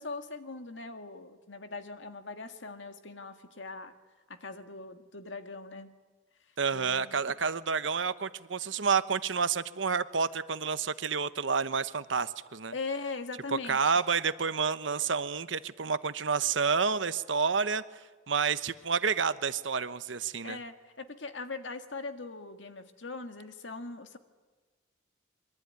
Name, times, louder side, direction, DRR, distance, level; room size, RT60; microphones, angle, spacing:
voice 1, 0.0-3.9 4.3-5.9 6.7-7.2 12.7-13.8 20.4-24.2, left 3 dB, 75° left, 7 dB, 1.9 m, -40 dB
voice 2, 6.6-12.7 13.7-17.8 18.3-20.6, right 5 dB, 80° right, 13 dB, 1.0 m, -29 dB
26.5 x 23.0 x 9.6 m, 1.3 s
head